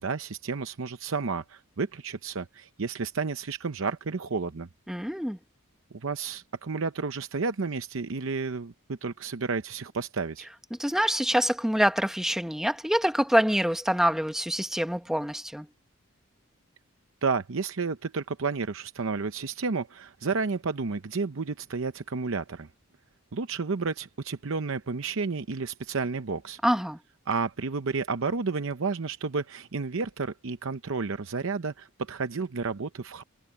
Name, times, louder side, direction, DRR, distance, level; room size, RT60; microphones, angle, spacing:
voice 1, 0.0-4.7 5.9-10.5 17.2-22.7 23.3-26.6 27.3-33.2, right 4 dB, 65° right, 0.7 m, -31 dB
voice 2, 4.9-5.4 10.7-15.7 26.6-27.0, equal, ahead, 1.1 m, -25 dB
head